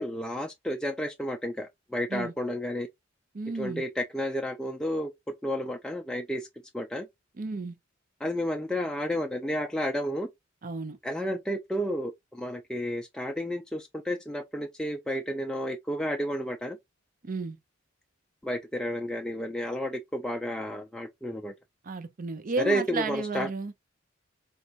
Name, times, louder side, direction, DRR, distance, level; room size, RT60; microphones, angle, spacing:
voice 1, 0.0-2.9 3.6-5.1 5.4-6.5 6.7-7.1 8.2-10.3 11.0-16.8 18.4-21.5 22.6-23.5, equal, 5° left, 0.3 m, -31 dB
voice 2, 3.3-3.8 7.4-7.7 10.6-11.0 17.2-17.6 21.8-23.7, right 3 dB, 45° right, 0.6 m, -33 dB
4.2 x 2.3 x 2.5 m
head